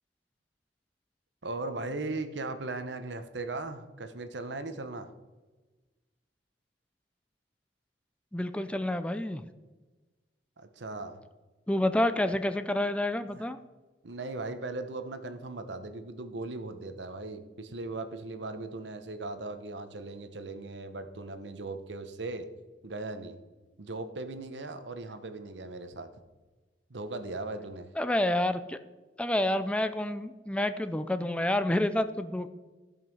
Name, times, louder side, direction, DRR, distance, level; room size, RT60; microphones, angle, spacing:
voice 1, 1.4-5.1 10.6-11.2 13.3-13.4 14.0-22.5 22.8-23.4 23.8-26.1 26.9-27.9, right 2 dB, 80° right, 9 dB, 1.0 m, -38 dB
voice 2, 8.3-9.4 11.7-13.6 28.0-28.8 29.2-32.5, left 1 dB, 5° left, 10 dB, 0.4 m, -28 dB
15.5 x 5.6 x 5.5 m, 1.2 s
head